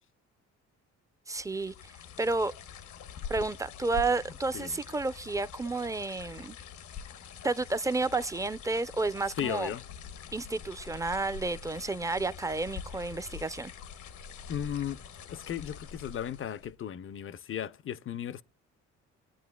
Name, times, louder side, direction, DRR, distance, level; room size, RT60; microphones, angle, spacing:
voice 1, 1.3-1.9 2.2-2.5 3.3-6.5 7.4-9.7 10.3-13.7, right 3 dB, 10° right, 0.6 m, -31 dB
sound 1, 1.4-16.8, left 7 dB, 75° left, 1.0 m, -45 dB
voice 2, 9.4-9.8 14.5-15.0 15.3-18.4, left 9 dB, 45° left, 0.6 m, -35 dB
23.0 x 9.0 x 2.3 m
cardioid pair, 90°, 30 cm